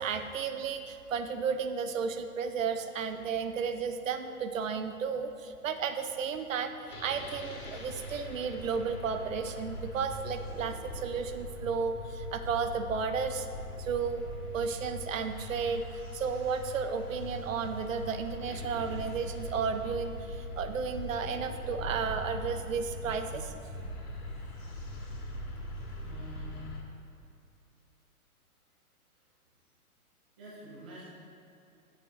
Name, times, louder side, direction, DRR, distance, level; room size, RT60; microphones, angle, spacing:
voice 1, 0.0-13.5 13.8-14.2 14.5-23.6, right 6 dB, 60° right, 8 dB, 0.9 m, -33 dB
sound 1, 6.9-26.8, left 1 dB, 75° left, 2.3 m, -41 dB
voice 2, 26.0-26.6 30.4-31.1, right 2 dB, 5° right, -8 dB, 0.4 m, -47 dB
17.5 x 6.9 x 3.0 m, 2.7 s
hypercardioid pair, 135°, 45 cm